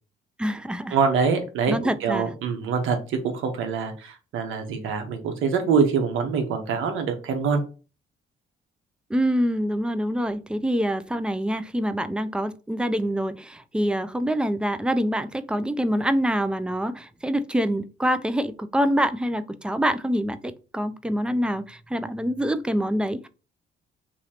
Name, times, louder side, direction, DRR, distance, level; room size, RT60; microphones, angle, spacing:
voice 1, 0.4-1.0 1.7-2.3 9.1-23.3, equal, 5° right, 13 dB, 0.4 m, -25 dB
voice 2, 0.9-7.6, right 5 dB, 85° right, 6 dB, 1.0 m, -24 dB
3.0 x 2.8 x 4.2 m, 0.33 s
cardioid pair, 90°, 20 cm